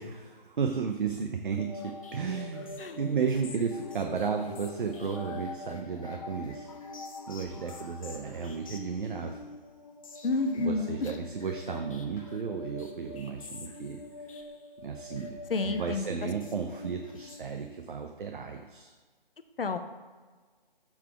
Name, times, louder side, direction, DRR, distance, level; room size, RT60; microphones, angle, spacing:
voice 1, 0.0-6.7 7.3-9.4 10.6-14.0 14.8-18.9, right 5 dB, 60° right, 4 dB, 0.6 m, -34 dB
sound 1, 1.5-18.0, left 2 dB, 35° left, 0.7 m, -45 dB
sound 2, 6.1-6.3 8.3-8.5 10.3-10.5 12.2-12.3, left 1 dB, 20° left, 1.7 m, -58 dB
voice 2, 10.2-11.2 15.5-16.3 19.6-19.8, left 3 dB, 75° left, 8 dB, 0.8 m, -30 dB
7.2 x 3.8 x 4.7 m, 1.4 s
figure-of-eight pair, 160°, 29 cm